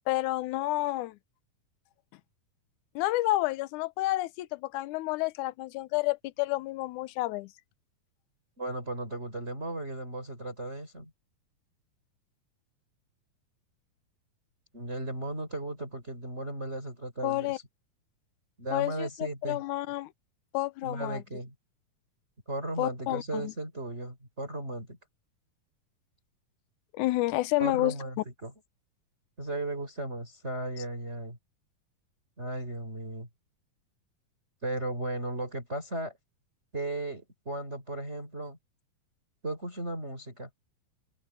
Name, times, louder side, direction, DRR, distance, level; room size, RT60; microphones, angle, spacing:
voice 1, 0.1-1.2 3.0-7.5 17.2-17.6 18.7-20.1 20.5-21.2 22.8-23.5 26.9-28.0, left 18 dB, 75° left, 1.9 m, -30 dB
voice 2, 8.6-11.1 14.7-17.6 18.6-19.6 20.8-21.5 22.5-25.0 27.6-28.5 29.4-31.4 32.4-33.3 34.6-36.2 36.7-38.6 39.4-40.5, right 2 dB, 15° right, 4.6 m, -36 dB
open air
omnidirectional pair, 4.2 m